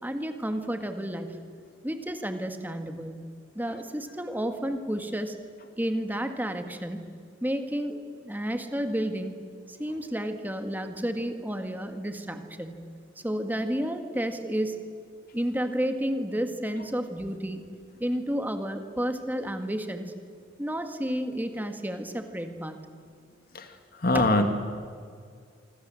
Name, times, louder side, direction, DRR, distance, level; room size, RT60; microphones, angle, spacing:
voice 1, 0.0-1.4 1.8-3.3 3.6-5.4 5.8-7.1 7.4-9.3 9.7-12.9 13.2-14.8 15.3-17.6 18.0-20.1 20.6-22.8 24.1-24.2, equal, 10° right, 6 dB, 1.9 m, -31 dB
voice 2, 23.5-24.5, left 2 dB, 50° left, 6 dB, 2.0 m, -24 dB
25.5 x 25.5 x 7.8 m, 2.1 s
head